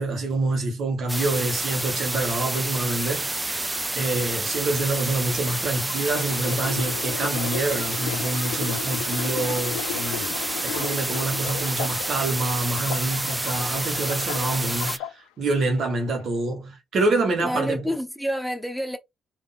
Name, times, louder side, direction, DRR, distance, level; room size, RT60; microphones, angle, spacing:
voice 1, 0.0-3.6 3.9-10.3 10.6-17.8, right 2 dB, 60° right, 1.2 m, -26 dB
sound 1, 1.1-15.0, right 2 dB, 20° right, 0.4 m, -29 dB
sound 2, 5.7-12.3 12.7-15.1 15.8-16.0, left 11 dB, 75° left, 0.4 m, -35 dB
voice 2, 17.4-19.0, equal, 5° left, 1.1 m, -28 dB
3.6 x 2.6 x 3.7 m
hypercardioid pair, 40°, 0 cm